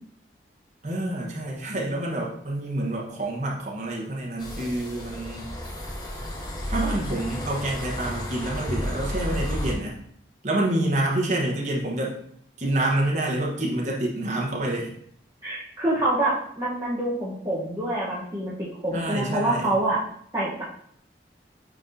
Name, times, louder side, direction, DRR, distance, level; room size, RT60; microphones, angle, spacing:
voice 1, 0.8-5.5 6.7-10.0 10.4-12.2 12.6-14.9 18.9-19.8, right 1 dB, 40° right, -3 dB, 1.3 m, -27 dB
sound 1, 4.4-9.7, equal, 20° left, 0.9 m, -32 dB
voice 2, 15.4-20.0 20.3-20.6, right 1 dB, 20° right, -8 dB, 1.2 m, -26 dB
8.8 x 3.9 x 2.8 m, 0.66 s
head